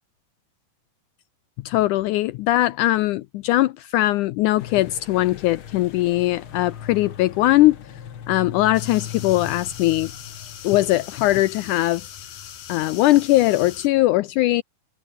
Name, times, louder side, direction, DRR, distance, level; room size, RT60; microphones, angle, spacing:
voice 1, 1.6-7.8 8.3-10.1 10.6-12.1 12.7-14.6, left 16 dB, 85° left, 1.7 m, -20 dB
sound 1, 4.6-12.1, left 8 dB, 50° left, 1.7 m, -39 dB
sound 2, 8.7-13.9, left 10 dB, 70° left, 3.9 m, -40 dB
omnidirectional pair, 4.4 m